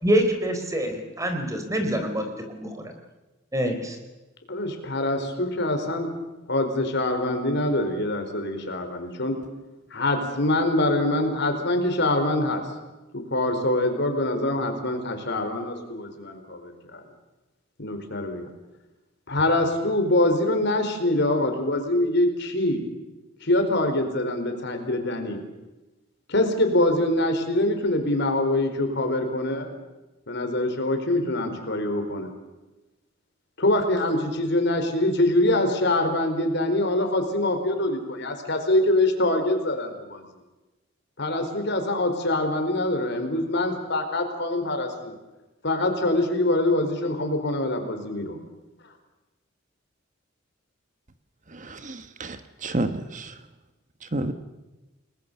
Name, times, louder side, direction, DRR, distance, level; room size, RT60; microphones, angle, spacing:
voice 1, 0.0-2.9 3.5-4.0, equal, 15° right, 5 dB, 4.0 m, -26 dB
voice 2, 4.5-6.1 6.5-9.4 9.9-12.6 13.1-17.0 17.8-18.5 19.3-22.8 23.4-25.4 26.3-29.7 30.3-32.3 33.6-40.2 41.2-45.2 45.6-48.4, left 1 dB, 60° left, 5 dB, 4.5 m, -24 dB
voice 3, 51.5-53.4 54.0-54.3, right 2 dB, 40° right, 10 dB, 1.3 m, -31 dB
30.0 x 20.5 x 7.0 m, 1.1 s
head